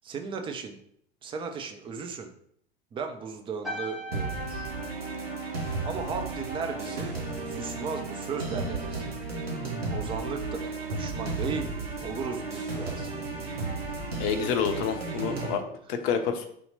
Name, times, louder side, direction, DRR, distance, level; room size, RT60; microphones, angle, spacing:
voice 1, 0.0-0.8 1.2-2.3 2.9-4.7 5.8-9.0 9.9-13.1, right 5 dB, 15° right, 5 dB, 0.4 m, -36 dB
sound 1, 3.6-8.3 8.5-8.9, left 1 dB, ahead, 0.9 m, -42 dB
sound 2, 4.1-15.5, right 3 dB, 80° right, 0.9 m, -34 dB
voice 2, 14.2-15.6 15.9-16.5, left 7 dB, 40° left, 7 dB, 0.6 m, -28 dB
3.7 x 2.8 x 4.0 m, 0.67 s
figure-of-eight pair, 80°, 31 cm